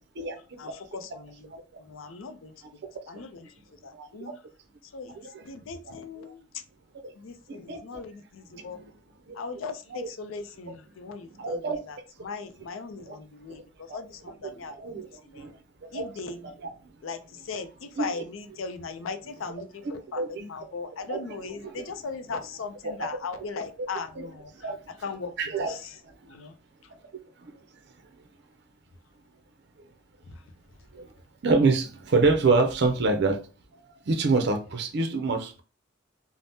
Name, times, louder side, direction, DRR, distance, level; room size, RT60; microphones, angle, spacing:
voice 1, 0.6-1.3 1.9-2.5 3.1-3.4 3.8-4.3 4.9-5.1 5.4-6.4 7.2-8.8 9.4-11.6 11.9-12.0 12.2-13.6 13.9-14.7 15.3-15.5 15.9-16.4 17.0-17.2 17.5-20.2 20.5-24.5 25.0-25.3 25.7-25.8 26.3-26.5, left 4 dB, 85° left, 9 dB, 0.4 m, -38 dB
voice 2, 3.9-4.3 5.1-5.4 6.2-6.3 7.0-7.1 7.7-8.0 8.5-8.9 9.3-9.6 9.9-10.1 11.4-11.8 13.0-13.2 13.9-14.0 14.2-15.5 15.9-16.7 18.0-18.2 19.8-20.5 21.1-21.9 22.3-22.4 22.8-23.1 23.3-23.4 23.8-23.9 24.1-24.3 24.6-24.8 25.4-25.8 27.4-27.5 30.9-31.1 31.4-33.4 33.7-35.6, right 3 dB, 55° right, 6 dB, 0.5 m, -27 dB
2.7 x 2.0 x 3.3 m, 0.34 s
head